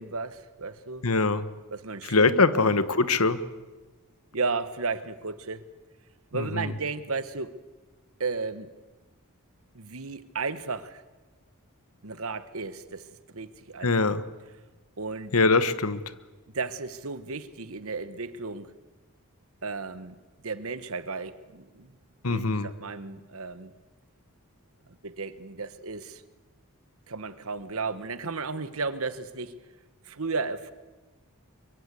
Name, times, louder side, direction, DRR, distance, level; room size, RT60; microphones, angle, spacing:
voice 1, 0.0-1.0 1.7-2.7 4.3-5.6 6.3-7.5 8.2-8.7 9.7-11.0 12.0-13.1 13.3-14.1 15.0-15.3 16.5-18.7 19.6-20.2 20.4-21.9 22.3-23.7 24.9-26.2 27.1-29.5 30.0-30.7, right 4 dB, 70° right, 13 dB, 1.3 m, -34 dB
voice 2, 1.0-1.5 2.1-3.4 6.3-6.7 13.8-14.2 15.3-16.0 22.2-22.7, left 3 dB, 80° left, 13 dB, 1.3 m, -23 dB
24.0 x 23.5 x 8.3 m, 1.2 s
head